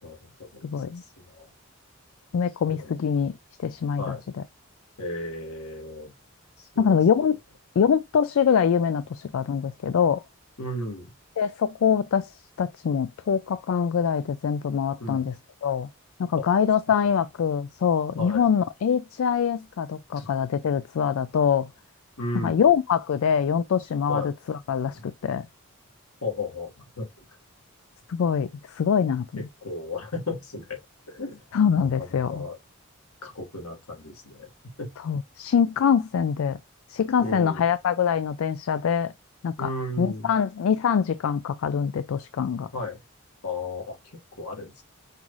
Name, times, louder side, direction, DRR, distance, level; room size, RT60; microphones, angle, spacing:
voice 1, 0.0-0.6 1.2-1.5 2.7-3.0 4.0-4.2 5.0-6.1 6.6-7.0 10.6-11.1 15.0-15.3 16.4-16.5 18.2-18.4 20.1-20.3 22.2-22.6 24.1-24.3 24.9-25.0 26.2-27.1 29.3-30.8 31.1-31.4 31.7-32.6 33.2-34.5 34.8-34.9 37.2-37.6 39.6-40.3 42.7-43.0 43.4-44.8, left 2 dB, 85° left, 1.7 m, -34 dB
voice 2, 0.6-1.0 2.3-4.4 6.8-7.4 7.8-10.2 11.4-15.4 15.6-15.9 16.2-21.7 22.3-25.5 28.1-29.5 31.5-32.5 35.0-36.6 36.9-39.1 39.4-39.7 40.0-42.7, left 7 dB, 70° left, 0.3 m, -24 dB
5.5 x 2.4 x 3.0 m
head